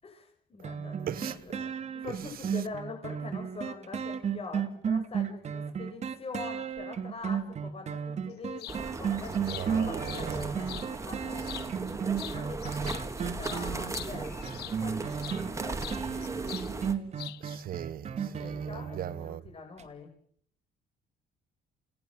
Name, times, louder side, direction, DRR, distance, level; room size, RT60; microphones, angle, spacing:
voice 1, 0.0-10.7 11.0-11.5 12.2-15.0 15.4-16.9 18.2-20.1, left 4 dB, 35° left, 6.9 m, -44 dB
sound 1, 0.6-19.3 19.8-19.9, right 7 dB, 40° right, 2.7 m, -34 dB
sound 2, 8.6-8.8 9.2-10.9 11.4-11.9 12.2-15.4 15.8-16.7 17.0-17.6, left 14 dB, 75° left, 1.1 m, -44 dB
sound 3, 8.7-16.9, right 3 dB, 15° right, 3.0 m, -37 dB
voice 2, 9.4-10.4 17.4-19.4, right 11 dB, 60° right, 1.4 m, -38 dB
30.0 x 18.5 x 7.5 m
cardioid pair, 110°, 17 cm